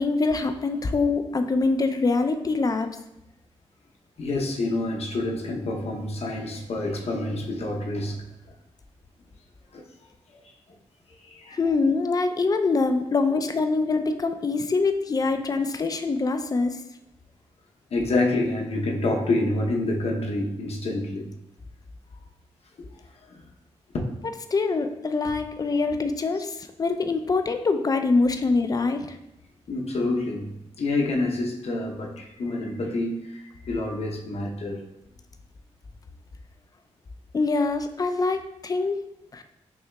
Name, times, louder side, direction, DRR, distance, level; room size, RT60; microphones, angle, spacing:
voice 1, 0.0-2.9 11.6-16.8 24.5-29.2 37.3-39.0 39.3-39.4, left 3 dB, 30° left, 7 dB, 0.4 m, -24 dB
voice 2, 4.2-8.2 9.7-9.8 10.3-10.4 11.2-11.6 17.9-21.3 23.3-23.4 29.7-30.5 30.8-34.8, left 2 dB, 60° left, 1 dB, 0.8 m, -27 dB
5.5 x 2.8 x 2.3 m, 0.86 s
cardioid pair, 55°, 12 cm